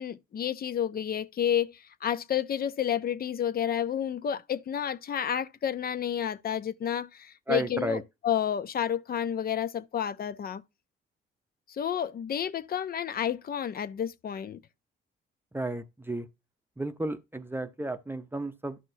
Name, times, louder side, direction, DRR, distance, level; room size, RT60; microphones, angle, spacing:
voice 1, 0.0-10.6 11.7-14.6, left 9 dB, 50° left, 0.6 m, -30 dB
voice 2, 7.5-8.0 15.5-16.3 16.8-18.8, right 2 dB, 10° right, 0.7 m, -33 dB
11.5 x 5.9 x 2.7 m
cardioid pair, 90°, 20 cm